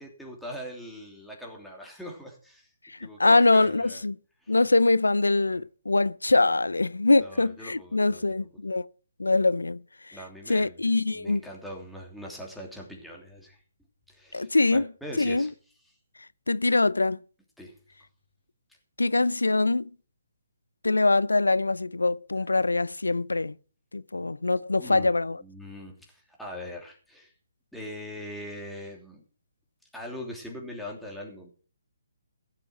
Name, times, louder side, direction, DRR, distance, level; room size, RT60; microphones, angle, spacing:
voice 1, 0.0-2.7 3.0-4.0 4.4-4.6 5.5-5.6 7.2-8.5 10.1-13.6 14.1-15.5 17.6-17.8 24.8-25.1 25.4-27.3 27.7-29.2 29.9-31.5, equal, ahead, 2.9 m, -41 dB
voice 2, 2.8-4.2 4.5-8.9 9.2-9.8 10.1-10.2 10.5-11.4 14.3-14.9 15.2-15.5 16.5-17.2 19.0-19.9 20.8-23.6 23.9-25.4, left 2 dB, 85° left, 0.5 m, -23 dB
15.5 x 7.0 x 6.0 m
figure-of-eight pair, 145°, 0 cm